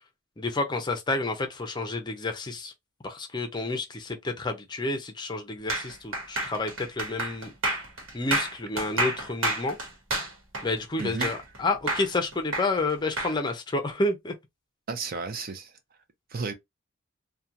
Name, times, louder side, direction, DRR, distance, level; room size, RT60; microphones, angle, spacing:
voice 1, 0.4-2.7 3.0-7.5 8.1-9.8 10.6-14.3, left 2 dB, 20° left, 0.5 m, -30 dB
sound 1, 5.7-11.6 11.9-13.3, right 2 dB, 85° right, 1.1 m, -29 dB
voice 2, 11.0-11.3 14.9-15.7 16.3-16.5, right 4 dB, 45° right, 0.5 m, -33 dB
2.8 x 2.2 x 2.4 m
head